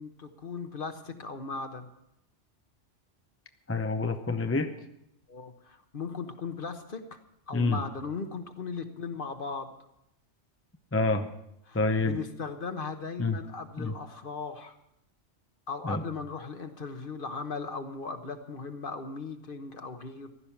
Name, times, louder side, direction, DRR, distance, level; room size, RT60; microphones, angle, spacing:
voice 1, 0.0-1.9 5.3-7.2 7.5-9.7 11.7-14.8 15.7-20.3, left 4 dB, 50° left, 7 dB, 1.3 m, -38 dB
voice 2, 3.7-4.7 7.5-7.8 10.9-11.3 11.7-12.2 13.2-13.4 13.8-13.9 15.8-16.0, left 3 dB, 15° left, 7 dB, 0.6 m, -27 dB
15.5 x 12.0 x 5.9 m, 0.80 s
omnidirectional pair, 1.2 m